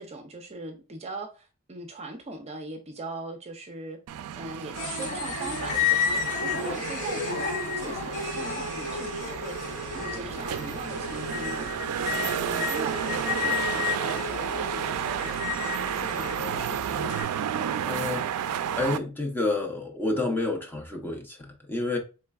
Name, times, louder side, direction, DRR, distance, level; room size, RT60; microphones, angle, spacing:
voice 1, 0.0-4.0 4.4-7.4 7.7-17.2, right 2 dB, 30° right, 0.5 m, -40 dB
sound 1, 4.1-19.0, right 9 dB, 90° right, 0.3 m, -32 dB
sound 2, 4.7-17.2, left 6 dB, 55° left, 1.7 m, -32 dB
Bowed string instrument, 9.2-13.4, equal, 5° right, 2.1 m, -50 dB
voice 2, 17.9-18.3 18.8-22.0, left 2 dB, 10° left, 0.7 m, -29 dB
4.4 x 3.2 x 2.3 m
head